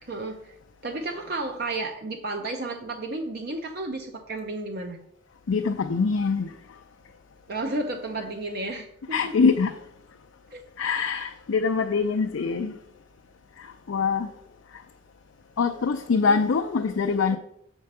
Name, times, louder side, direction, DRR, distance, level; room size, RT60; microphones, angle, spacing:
voice 1, 0.0-0.5 0.8-5.1 7.5-9.2 10.5-10.6 16.1-16.4, right 2 dB, 50° right, 0.7 m, -32 dB
voice 2, 5.5-6.5 9.1-9.8 10.8-12.7 13.6-14.3 15.6-17.4, left 5 dB, 80° left, 0.5 m, -24 dB
6.7 x 4.5 x 6.6 m
head